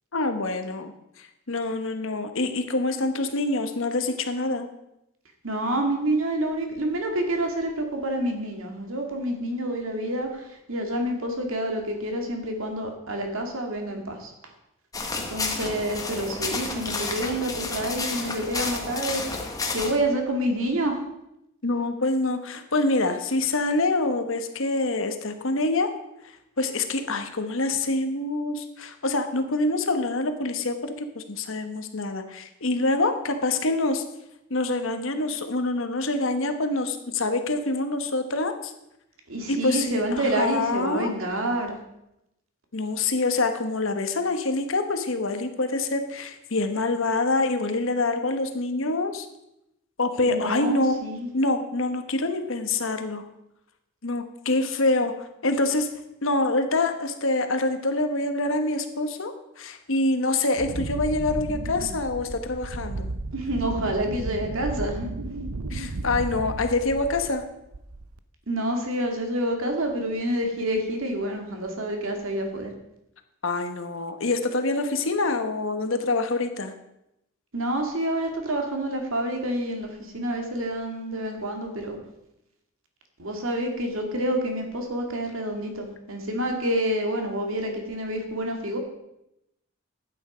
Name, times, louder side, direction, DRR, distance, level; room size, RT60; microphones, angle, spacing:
voice 1, 0.1-0.9 1.2-4.7 21.6-25.9 26.6-34.0 34.5-38.7 39.5-41.1 42.7-49.3 50.0-51.0 51.3-53.2 54.0-55.9 56.2-63.1 65.7-67.4 73.4-76.7, left 2 dB, 65° left, 7 dB, 1.2 m, -26 dB
voice 2, 5.4-14.3 15.3-19.2 19.7-21.0 39.3-41.8 50.3-51.3 63.3-65.1 68.5-72.7 77.5-82.0 83.2-88.8, right 1 dB, 70° right, 3 dB, 2.2 m, -28 dB
sound 1, 14.9-19.9, left 3 dB, 15° left, 1.2 m, -31 dB
Wind, 60.6-67.4 67.7-68.2, right 2 dB, 90° right, 0.7 m, -33 dB
12.0 x 9.1 x 5.1 m, 0.85 s
head